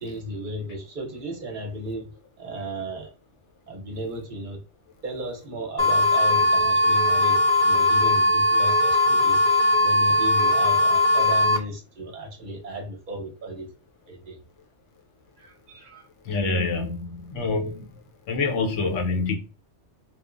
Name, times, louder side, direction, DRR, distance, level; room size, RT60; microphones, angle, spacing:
voice 1, 0.0-2.1 2.4-3.1 3.7-4.6 5.0-13.7 14.1-14.4 15.4-16.1, right 1 dB, 50° right, 0.8 m, -35 dB
sound 1, 5.8-11.6, left 1 dB, 50° left, 0.6 m, -19 dB
voice 2, 16.2-17.9 18.3-19.4, left 3 dB, 80° left, 1.0 m, -26 dB
3.0 x 2.0 x 2.4 m
omnidirectional pair, 1.3 m